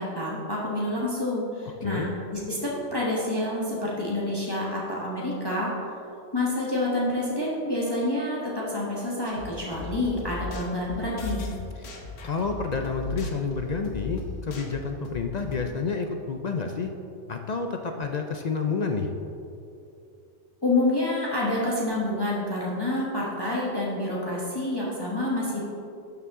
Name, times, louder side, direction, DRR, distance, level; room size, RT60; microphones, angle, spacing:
voice 1, 0.0-5.7 6.3-11.5 20.6-25.7, left 1 dB, 20° left, -5 dB, 1.3 m, -28 dB
sound 1, 9.3-15.7, left 4 dB, 85° left, 1.3 m, -38 dB
voice 2, 11.8-16.9 17.3-19.1, left 4 dB, 55° left, 4 dB, 0.5 m, -29 dB
11.5 x 6.9 x 3.6 m, 2.7 s
omnidirectional pair, 1.3 m